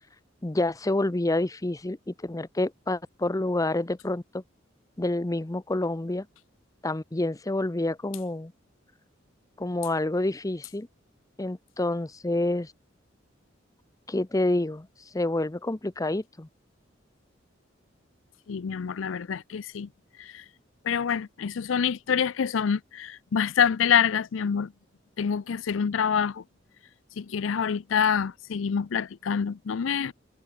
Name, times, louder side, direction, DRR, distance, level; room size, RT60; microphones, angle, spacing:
voice 1, 0.4-4.4 5.0-6.3 6.8-8.5 9.6-10.9 11.4-12.7 14.1-14.9 15.1-16.5, left 2 dB, 20° left, 0.7 m, -28 dB
voice 2, 18.5-19.9 20.2-20.4 20.8-24.7 25.2-26.4 27.2-30.1, left 7 dB, 85° left, 0.5 m, -26 dB
head